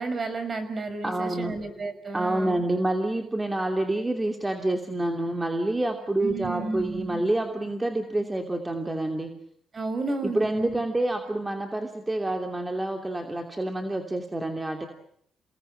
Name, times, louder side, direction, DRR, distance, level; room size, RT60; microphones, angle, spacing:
voice 1, 0.0-2.6 6.2-7.2 9.7-10.8, right 3 dB, 40° right, 10 dB, 6.2 m, -32 dB
voice 2, 1.0-1.6 2.1-9.3 10.3-14.9, right 1 dB, 15° right, 4 dB, 2.8 m, -28 dB
29.5 x 19.0 x 9.3 m, 0.68 s
cardioid pair, 90°, 0 cm